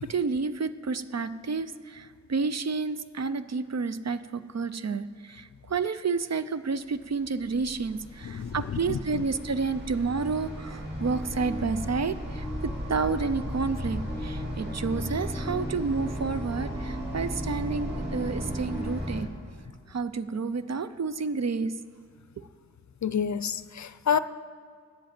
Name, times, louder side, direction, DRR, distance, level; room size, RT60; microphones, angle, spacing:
voice 1, 0.0-19.3 19.9-21.7, right 4 dB, 60° right, 12 dB, 0.5 m, -30 dB
sound 1, 7.1-19.2, equal, 35° right, 2.5 m, -35 dB
voice 2, 8.2-9.2 23.0-24.2, left 7 dB, 70° left, 14 dB, 0.4 m, -29 dB
8.6 x 7.7 x 8.9 m, 2.1 s
wide cardioid pair, 60°, 30 cm